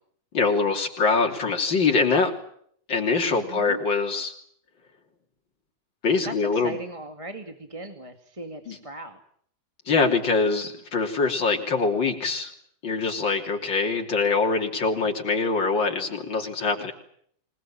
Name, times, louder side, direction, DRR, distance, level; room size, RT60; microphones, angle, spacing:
voice 1, 0.3-2.3 2.9-4.3 6.0-6.8 8.7-8.8 9.9-12.5 12.8-16.9, left 4 dB, 90° left, 2 dB, 3.8 m, -24 dB
voice 2, 3.3-3.8 6.2-9.2, right 1 dB, 15° right, 6 dB, 2.1 m, -38 dB
27.0 x 20.0 x 8.8 m, 0.66 s
omnidirectional pair, 2.0 m